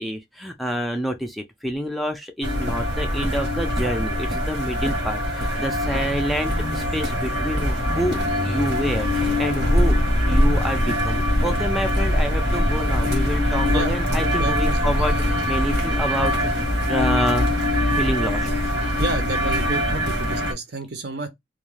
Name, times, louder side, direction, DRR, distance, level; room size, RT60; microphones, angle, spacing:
voice 1, 0.0-17.5 17.9-18.5, equal, ahead, 0.3 m, -28 dB
sound 1, 2.4-20.5, left 1 dB, 80° right, 1.2 m, -22 dB
voice 2, 13.7-14.0 14.3-14.9 19.0-21.3, right 2 dB, 60° right, 0.7 m, -30 dB
2.3 x 2.1 x 3.1 m
head